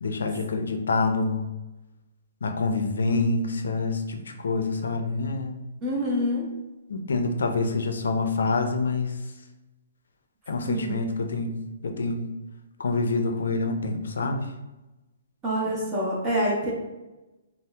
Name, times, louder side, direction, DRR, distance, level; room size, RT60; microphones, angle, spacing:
voice 1, 0.0-1.4 2.4-5.6 6.9-9.3 10.5-12.3 12.8-14.5, left 3 dB, 80° left, 5 dB, 0.4 m, -27 dB
voice 2, 5.8-6.5 10.7-11.0 15.4-16.7, equal, 10° right, -5 dB, 0.4 m, -26 dB
2.8 x 2.0 x 3.3 m, 1.0 s
hypercardioid pair, 175°, 0 cm